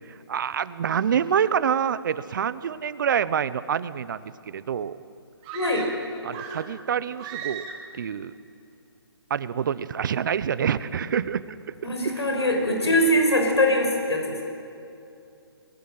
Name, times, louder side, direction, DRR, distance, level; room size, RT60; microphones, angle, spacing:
voice 1, 0.3-5.0 6.2-7.7 7.9-8.3 9.3-11.4 12.0-12.1, right 8 dB, 50° right, 16 dB, 0.9 m, -26 dB
sound 1, 5.4-6.8 7.2-8.0, right 7 dB, 25° right, 2.0 m, -37 dB
voice 2, 5.5-5.8 11.8-14.4, left 1 dB, 85° left, 2 dB, 5.7 m, -22 dB
23.5 x 21.0 x 7.8 m, 2.6 s
hypercardioid pair, 150°, 14 cm